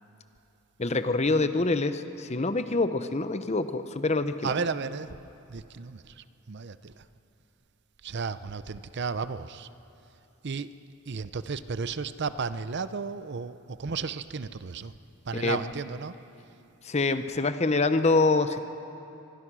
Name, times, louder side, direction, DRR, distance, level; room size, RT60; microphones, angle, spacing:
voice 1, 0.8-4.5 15.3-15.6 16.8-18.7, left 3 dB, 30° left, 10 dB, 0.8 m, -25 dB
voice 2, 4.4-5.2 5.5-7.0 8.0-9.7 10.4-10.8 11.1-14.9 15.3-16.1, right 5 dB, 55° right, 13 dB, 0.6 m, -33 dB
24.5 x 21.0 x 6.2 m, 2.9 s
head